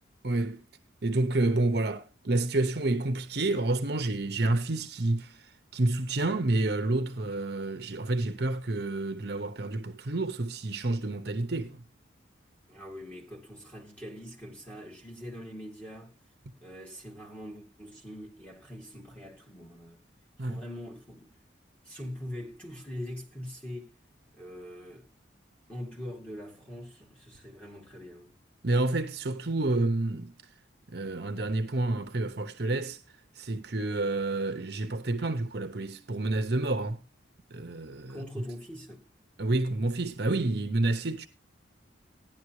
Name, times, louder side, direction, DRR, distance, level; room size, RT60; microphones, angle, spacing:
voice 1, 0.2-0.6 1.0-11.8 20.4-20.6 28.6-30.3 30.9-33.0 33.4-37.0 37.5-38.2 39.4-41.3, right 2 dB, 55° right, 0.9 m, -29 dB
voice 2, 12.7-16.1 16.6-20.0 20.4-21.3 21.8-23.9 24.3-25.1 25.7-28.3 38.1-39.0, equal, 5° left, 2.7 m, -43 dB
14.5 x 10.5 x 3.1 m
head